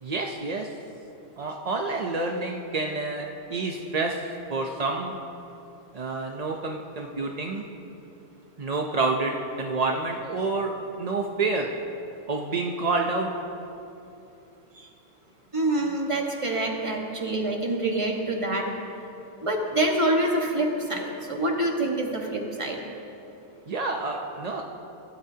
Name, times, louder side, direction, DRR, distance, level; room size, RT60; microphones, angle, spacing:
voice 1, 0.0-0.7 1.4-4.2 4.5-5.2 5.9-7.6 8.6-10.7 11.0-11.7 12.3-13.3 14.7-14.9 23.7-24.6, right 3 dB, 45° right, 1 dB, 0.5 m, -28 dB
voice 2, 15.5-18.7 19.4-22.8, right 1 dB, 20° right, 0 dB, 1.4 m, -26 dB
23.0 x 12.5 x 2.8 m, 2.8 s
omnidirectional pair, 1.6 m